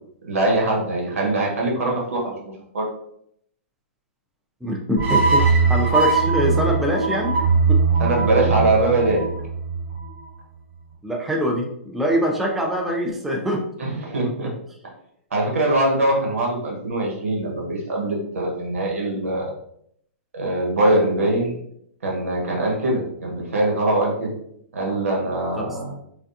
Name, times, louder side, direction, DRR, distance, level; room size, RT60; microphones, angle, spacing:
voice 1, 0.2-2.4 2.7-2.9 8.0-9.3 13.8-14.5 15.3-19.5 20.3-21.6 22.0-24.3 24.7-25.9, right 1 dB, 90° right, -1 dB, 1.2 m, -22 dB
voice 2, 4.6-7.4 7.7-7.8 11.0-13.7 25.6-25.7, equal, 5° right, 0 dB, 0.3 m, -23 dB
sound 1, 5.0-10.2, right 4 dB, 40° right, 1.0 m, -20 dB
3.3 x 2.3 x 2.7 m, 0.71 s
hypercardioid pair, 145°, 7 cm